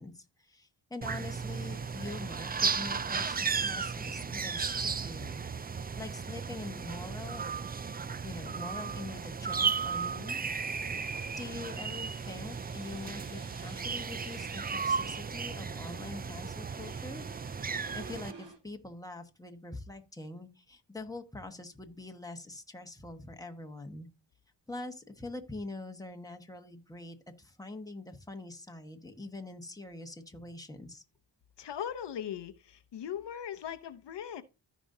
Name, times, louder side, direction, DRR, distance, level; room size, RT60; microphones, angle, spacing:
voice 1, 0.0-5.4 6.0-7.5 8.2-10.4 11.4-17.3 17.9-24.1 24.7-31.0, left 2 dB, 10° left, 1.3 m, -44 dB
sound 1, 1.0-18.3, right 5 dB, 25° right, 0.4 m, -35 dB
sound 2, 8.5-18.6, right 4 dB, 75° right, 2.3 m, -55 dB
voice 2, 31.6-34.4, left 9 dB, 75° left, 0.8 m, -39 dB
14.5 x 5.2 x 2.7 m
wide cardioid pair, 90°, 42 cm